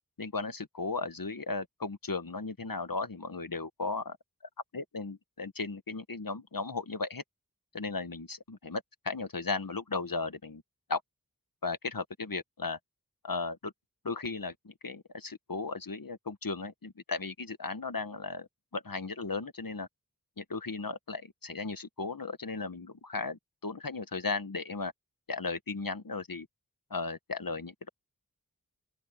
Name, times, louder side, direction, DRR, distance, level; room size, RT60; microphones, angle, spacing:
voice 1, 0.2-4.2 4.7-7.2 7.7-10.6 10.9-11.0 11.6-12.8 13.2-13.7 14.0-19.9 20.4-24.9 25.3-26.5 26.9-27.9, left 4 dB, 70° left, 1.5 m, -36 dB
open air
wide cardioid pair, 50°, 35 cm